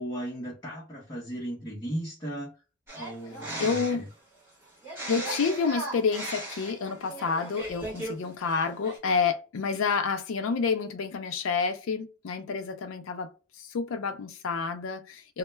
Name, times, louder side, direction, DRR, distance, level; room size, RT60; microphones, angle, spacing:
voice 1, 0.0-2.5 2.9-4.0, right 1 dB, 20° left, 0.6 m, -36 dB
sound 1, 2.9-4.1 4.8-8.1 8.4-9.0, right 1 dB, 10° right, 0.9 m, -37 dB
voice 2, 3.6-4.0 5.1-13.3 13.6-15.4, left 5 dB, 75° left, 0.4 m, -29 dB
2.1 x 2.1 x 3.0 m
head